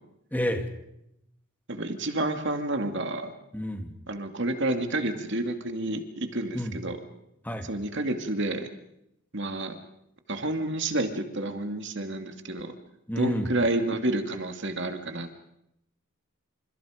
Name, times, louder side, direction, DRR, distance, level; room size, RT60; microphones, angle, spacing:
voice 1, 0.3-0.7 3.5-3.9 6.5-6.7 7.4-7.7 13.1-13.5, equal, 10° left, 5 dB, 2.6 m, -29 dB
voice 2, 1.7-3.3 4.1-7.0 7.6-8.7 9.3-9.8 10.3-12.7 13.2-15.4, right 2 dB, 55° right, 6 dB, 2.6 m, -29 dB
28.5 x 28.0 x 5.2 m, 0.80 s
head